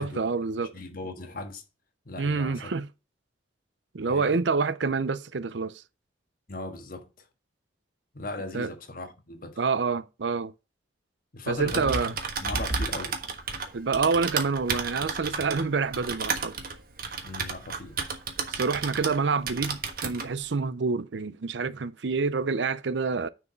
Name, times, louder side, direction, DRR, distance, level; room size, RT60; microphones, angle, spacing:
voice 1, 0.0-0.7 2.2-2.9 3.9-5.8 8.5-8.7 9.6-10.5 11.5-12.1 13.7-16.5 18.5-23.3, right 4 dB, 80° right, 0.6 m, -27 dB
voice 2, 0.6-1.6 2.0-2.7 4.0-4.4 6.5-7.3 8.1-9.6 11.3-13.2 17.2-18.0, left 2 dB, 50° left, 1.6 m, -38 dB
Typing, 11.5-19.2 19.5-20.3, right 5 dB, 55° right, 1.4 m, -32 dB
9.8 x 4.8 x 5.1 m
head